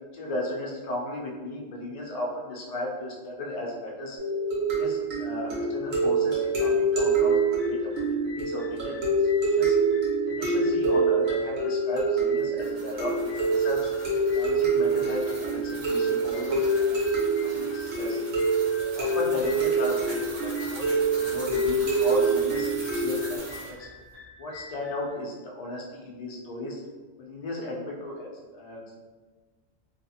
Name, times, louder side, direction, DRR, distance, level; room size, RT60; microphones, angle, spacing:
voice 1, 0.0-4.2 4.7-8.9 9.2-9.7 10.2-13.1 13.4-13.9 14.3-17.0 17.4-18.2 19.0-20.8 21.1-23.8 24.4-26.8 27.2-28.9, left 1 dB, 80° left, -2 dB, 0.3 m, -35 dB
sound 1, 4.2-23.4, right 3 dB, 85° right, 1.2 m, -26 dB
sound 2, 6.4-25.1, left 2 dB, 5° left, 0.7 m, -47 dB
sound 3, 12.4-23.7, right 1 dB, 45° right, 1.0 m, -42 dB
2.6 x 2.5 x 2.7 m, 1.3 s
omnidirectional pair, 1.3 m